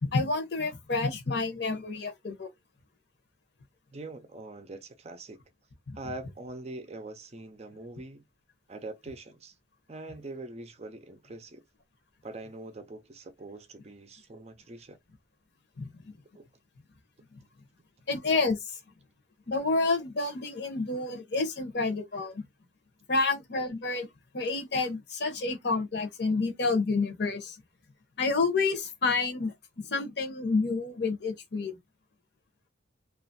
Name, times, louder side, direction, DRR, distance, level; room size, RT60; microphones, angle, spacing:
voice 1, 0.0-2.5 5.9-6.0 15.8-15.9 18.1-18.8 19.5-22.4 23.1-24.1 24.3-27.6 28.2-31.7, left 3 dB, 55° left, 0.9 m, -29 dB
voice 2, 3.9-5.4 5.9-8.2 8.7-9.6 9.9-11.6 12.2-15.0 16.3-16.5, right 2 dB, 30° right, 0.5 m, -43 dB
2.9 x 2.4 x 2.6 m
head